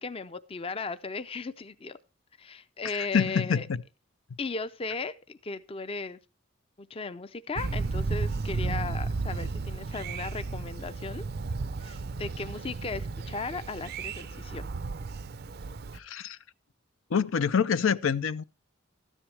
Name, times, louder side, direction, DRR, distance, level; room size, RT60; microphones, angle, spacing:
voice 1, 0.0-2.0 2.4-3.7 4.4-6.2 6.8-11.2 11.8-14.6, left 4 dB, 30° left, 0.5 m, -36 dB
voice 2, 2.8-3.8 15.9-16.4 17.1-18.4, left 6 dB, 75° left, 0.5 m, -26 dB
Thunder, 7.6-16.0, right 3 dB, 50° right, 0.5 m, -33 dB
13.0 x 9.9 x 3.3 m
head